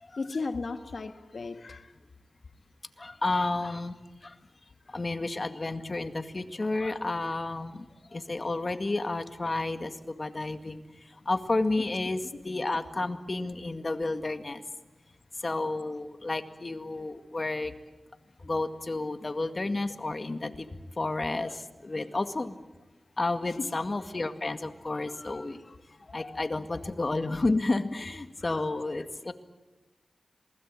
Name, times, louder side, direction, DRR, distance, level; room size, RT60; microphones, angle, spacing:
voice 1, 0.2-1.9 23.6-23.7 26.8-26.9 28.4-28.6, left 3 dB, 70° left, 8 dB, 1.9 m, -35 dB
voice 2, 3.0-3.9 4.2-4.4 4.9-14.6 15.4-17.7 18.4-22.6 23.2-25.6 26.0-29.3, left 2 dB, 45° left, 8 dB, 2.0 m, -31 dB
27.5 x 20.5 x 8.8 m, 1.1 s
cardioid pair, 45°, 0 cm